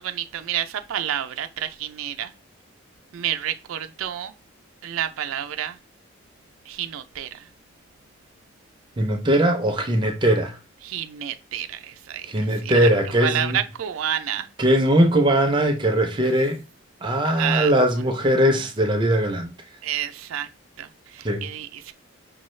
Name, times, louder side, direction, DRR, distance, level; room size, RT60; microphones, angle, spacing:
voice 1, 0.0-2.3 3.1-4.3 4.8-5.8 6.7-7.5 10.8-12.9 13.2-14.5 17.4-17.7 19.8-20.5 20.8-21.9, right 10 dB, 90° right, 0.4 m, -29 dB
voice 2, 9.0-10.6 12.2-13.6 14.6-16.6 17.0-19.5 21.2-21.4, right 1 dB, 25° right, 0.5 m, -20 dB
5.4 x 2.3 x 3.1 m
head